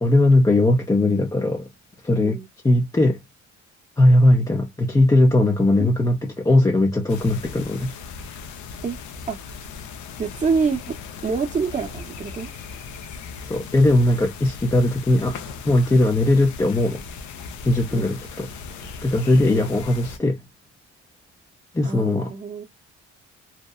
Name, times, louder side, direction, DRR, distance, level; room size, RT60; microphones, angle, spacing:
voice 1, 0.0-1.7 2.0-3.2 4.0-7.9 13.5-15.4 15.6-17.0 17.6-20.4 21.7-22.3, left 1 dB, 10° left, 0.4 m, -19 dB
sound 1, 7.1-20.2, left 5 dB, 75° left, 0.6 m, -38 dB
voice 2, 10.2-10.9 11.2-12.5 17.9-18.1 19.5-19.7 21.8-22.6, right 5 dB, 25° right, 0.6 m, -26 dB
2.8 x 2.0 x 2.2 m
cardioid pair, 90°, 30 cm